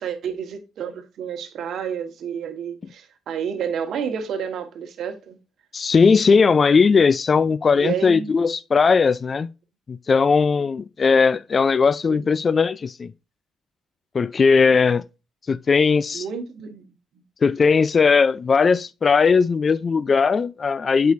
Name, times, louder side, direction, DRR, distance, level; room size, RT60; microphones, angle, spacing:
voice 1, 0.0-5.4 7.7-8.3 12.1-12.4 16.1-16.9, right 7 dB, 70° right, 1.3 m, -30 dB
voice 2, 5.7-9.5 9.9-13.1 14.1-15.0 15.5-16.2 17.4-21.1, left 5 dB, 40° left, 0.3 m, -18 dB
8.0 x 4.9 x 2.5 m
cardioid pair, 90°, 0 cm